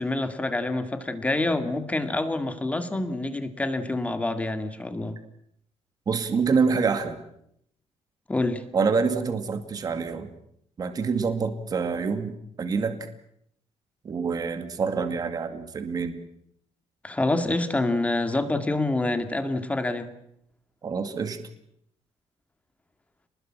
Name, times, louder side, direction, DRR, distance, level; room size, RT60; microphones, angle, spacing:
voice 1, 0.0-5.2 8.3-8.6 17.0-20.1, left 2 dB, 10° left, 8 dB, 2.1 m, -27 dB
voice 2, 6.1-7.2 8.7-10.3 10.8-13.1 14.0-16.2 20.8-21.4, right 5 dB, 30° right, 7 dB, 2.2 m, -26 dB
28.5 x 20.5 x 7.5 m, 0.73 s
cardioid pair, 175°, 12 cm